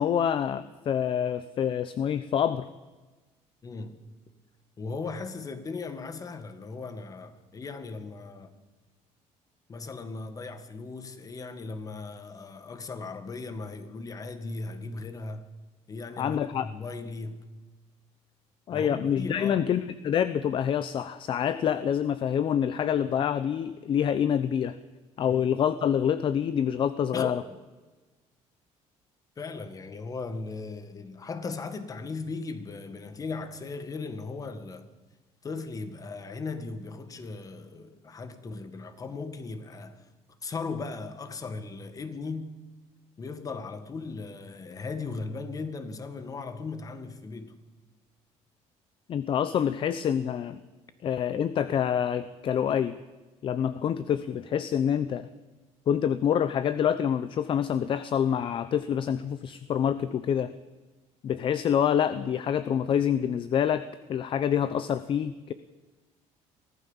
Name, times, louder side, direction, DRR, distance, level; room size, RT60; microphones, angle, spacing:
voice 1, 0.0-2.7 16.2-16.7 18.7-24.8 25.2-27.4 49.1-50.6 51.0-53.0 53.4-55.3 55.9-60.5 61.2-65.5, left 8 dB, 45° left, 0.8 m, -26 dB
voice 2, 3.6-4.0 4.8-8.5 9.7-15.5 15.9-17.5 18.7-19.6 25.3-25.4 27.1-27.4 29.4-34.9 35.4-40.1 40.4-42.6 43.2-47.6, left 4 dB, 30° left, 1.9 m, -37 dB
23.5 x 15.5 x 7.3 m
cardioid pair, 140°, 12 cm